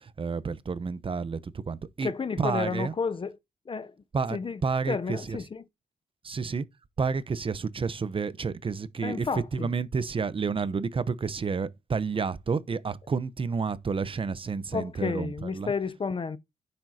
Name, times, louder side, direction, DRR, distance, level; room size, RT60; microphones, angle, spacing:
voice 1, 0.0-2.1 2.4-2.9 4.1-5.4 6.2-6.6 7.0-15.7, right 5 dB, 35° right, 0.8 m, -30 dB
voice 2, 2.0-3.3 3.7-3.9 4.3-4.6 4.9-5.6 9.0-9.7 14.7-16.4, left 5 dB, 35° left, 0.7 m, -31 dB
9.6 x 7.6 x 2.8 m
cardioid pair, 90°, 15 cm